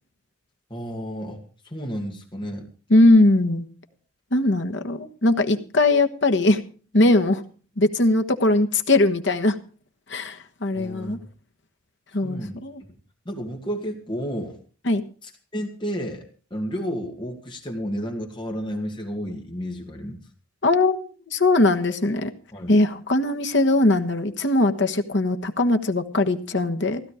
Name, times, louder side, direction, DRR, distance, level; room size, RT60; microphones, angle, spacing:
voice 1, 0.7-2.7 10.7-11.3 12.2-12.6 13.3-14.6 15.2-16.2 16.5-20.3 22.5-22.8, equal, 25° left, 2 dB, 2.2 m, -32 dB
voice 2, 2.9-3.6 4.3-6.6 6.9-7.4 7.8-9.6 10.1-11.2 12.1-12.8 14.9-15.0 20.6-22.3 22.7-27.0, left 2 dB, 60° left, 7 dB, 1.3 m, -20 dB
16.0 x 12.5 x 4.9 m, 0.39 s
head